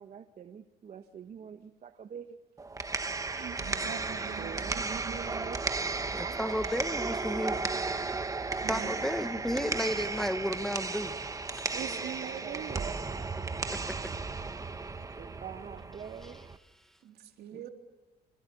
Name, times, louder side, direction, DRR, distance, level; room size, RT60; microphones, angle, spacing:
voice 1, 0.0-2.4 4.1-5.7 6.1-8.3 11.8-13.3 13.5-14.3 15.2-16.4, right 7 dB, 45° right, 1.4 m, -46 dB
sound 1, 2.6-16.6, right 3 dB, 20° right, 1.3 m, -35 dB
voice 2, 3.3-5.2 8.6-9.1 11.7-12.9 17.0-17.7, right 9 dB, 70° right, 3.5 m, -43 dB
voice 3, 6.1-7.7 8.7-11.1 11.5-11.6, equal, ahead, 1.3 m, -33 dB
28.0 x 26.0 x 7.0 m
cardioid pair, 110°, 17 cm